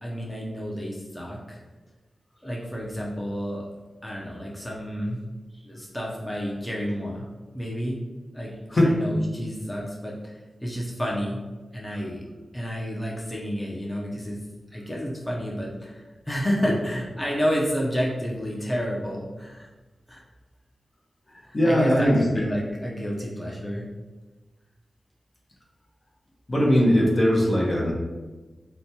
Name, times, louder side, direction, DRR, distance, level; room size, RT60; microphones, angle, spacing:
voice 1, 0.0-1.6 2.4-3.7 4.0-5.2 5.5-7.3 7.5-8.0 8.3-11.4 11.7-12.2 12.5-14.4 14.7-19.7 20.1-20.2 21.4-23.8, equal, 15° left, -4 dB, 0.6 m, -30 dB
voice 2, 21.5-22.3 26.5-27.9, equal, 45° left, -3 dB, 0.7 m, -20 dB
3.0 x 2.2 x 2.7 m, 1.2 s
cardioid pair, 45°, 0 cm